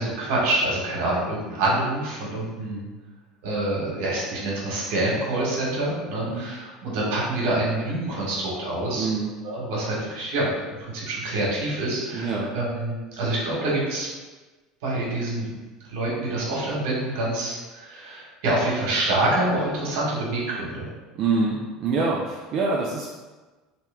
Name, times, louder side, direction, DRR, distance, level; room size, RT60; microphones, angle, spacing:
voice 1, 0.0-2.9 3.4-9.1 9.4-10.5 10.8-14.1 14.8-15.6 15.9-20.9, right 2 dB, 75° right, -4 dB, 1.4 m, -26 dB
voice 2, 9.0-9.3 12.1-12.5 21.2-23.1, right 4 dB, 50° right, -3 dB, 0.5 m, -25 dB
3.0 x 2.9 x 3.5 m, 1.2 s
supercardioid pair, 110°, 0 cm